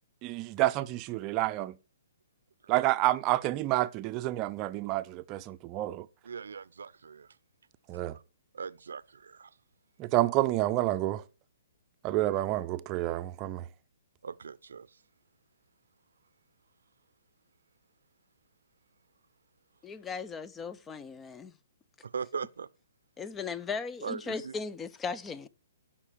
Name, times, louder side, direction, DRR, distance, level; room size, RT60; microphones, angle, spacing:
voice 1, 0.2-1.8 2.7-6.1 7.9-8.2 10.0-11.2 12.0-13.7, right 16 dB, 30° right, 0.7 m, -29 dB
voice 2, 6.2-7.4 8.1-8.2 8.5-9.6 14.2-15.0 22.0-22.7 24.0-24.5, right 6 dB, 80° right, 0.7 m, -40 dB
voice 3, 19.8-21.5 23.2-25.5, left 5 dB, 15° left, 0.7 m, -37 dB
14.5 x 6.0 x 4.7 m
hypercardioid pair, 140°, 0 cm